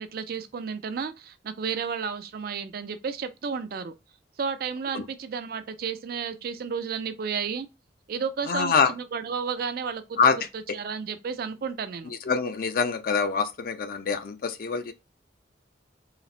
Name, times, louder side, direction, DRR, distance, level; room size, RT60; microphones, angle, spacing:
voice 1, 0.0-3.9 4.4-7.7 8.1-10.2 10.5-12.1, right 6 dB, 55° right, 0.4 m, -32 dB
voice 2, 8.5-8.9 10.2-10.4 12.2-14.9, left 5 dB, 55° left, 0.5 m, -24 dB
4.0 x 2.0 x 2.4 m
head